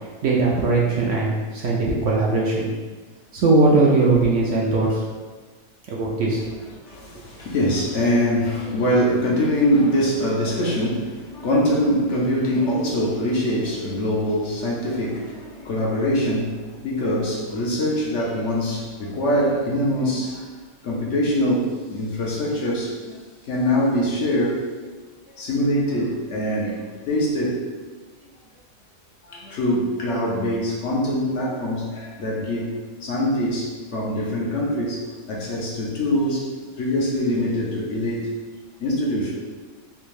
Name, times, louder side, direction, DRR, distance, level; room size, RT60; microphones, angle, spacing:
voice 1, 0.2-2.7 3.3-5.0 5.9-6.4, right 3 dB, 65° right, -4 dB, 0.8 m, -19 dB
voice 2, 6.8-20.5 20.8-23.2 23.4-24.9 25.3-27.6 29.2-32.7 33.0-38.3 38.8-39.3, equal, 65° left, -4 dB, 0.9 m, -23 dB
3.4 x 2.7 x 3.1 m, 1.3 s
omnidirectional pair, 1.5 m